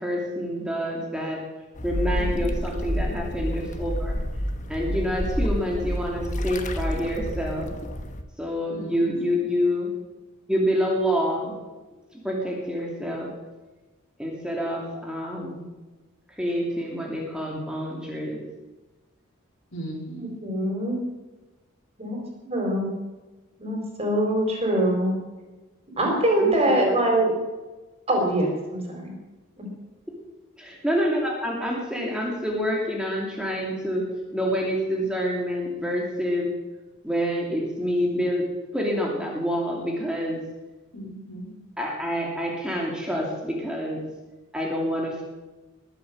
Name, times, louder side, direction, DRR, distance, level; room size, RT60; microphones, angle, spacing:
voice 1, 0.0-1.4 1.8-4.2 4.7-7.8 8.4-9.9 10.5-11.5 12.1-13.3 14.2-15.6 16.4-18.4 26.4-26.9 30.6-34.1 34.3-36.5 37.0-38.4 38.7-40.4 41.8-44.0 44.5-45.2, equal, 5° right, -2 dB, 2.8 m, -27 dB
sound 1, 1.7-8.2, equal, 35° left, 1.3 m, -29 dB
voice 2, 2.1-2.5 8.7-9.2 19.7-20.3 40.9-41.5, right 1 dB, 65° left, 0 dB, 4.7 m, -37 dB
voice 3, 20.2-21.0 22.0-22.2 22.4-22.9 23.6-25.1 26.0-27.3 28.1-29.1 29.6-29.7, right 1 dB, 30° right, 1 dB, 4.5 m, -23 dB
21.5 x 7.8 x 7.4 m, 1.2 s
head